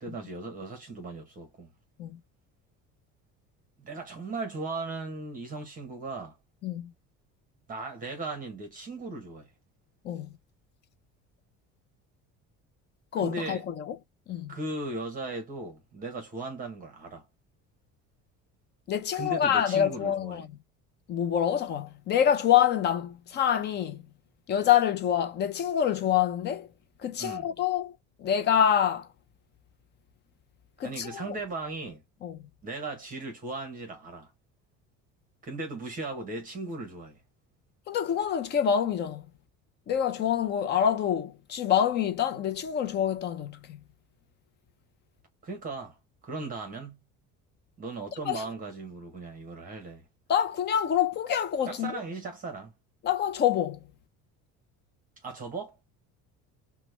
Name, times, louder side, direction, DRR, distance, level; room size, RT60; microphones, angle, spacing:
voice 1, 0.0-1.7 3.8-6.4 7.7-9.5 13.2-13.6 14.5-17.2 19.1-20.4 27.2-27.5 30.8-32.0 32.6-34.3 35.4-37.2 45.4-46.0 46.2-47.0 47.8-50.0 51.7-52.7 55.2-55.8, right 3 dB, 25° right, 1.0 m, -37 dB
voice 2, 13.1-13.9 14.3-14.5 18.9-20.5 21.1-24.0 24.5-26.7 27.0-29.1 30.8-31.4 32.2-32.4 37.9-39.3 39.9-43.8 48.3-48.4 50.3-52.0 53.0-53.8, left 9 dB, 35° left, 0.5 m, -26 dB
2.9 x 2.2 x 3.1 m
cardioid pair, 160°, 31 cm